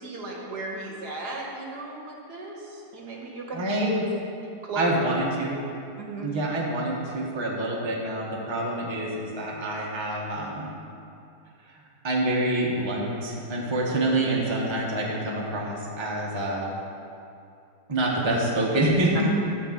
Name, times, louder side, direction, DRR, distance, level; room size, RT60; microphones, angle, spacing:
voice 1, 0.0-3.6 4.6-4.8 6.0-6.3, right 3 dB, 75° right, -1 dB, 1.8 m, -36 dB
voice 2, 3.5-4.1 4.7-5.6 6.2-10.7 11.6-11.7 12.0-16.7 17.9-19.3, right 1 dB, 20° right, -4 dB, 1.1 m, -26 dB
10.5 x 3.9 x 7.2 m, 2.6 s
omnidirectional pair, 1.8 m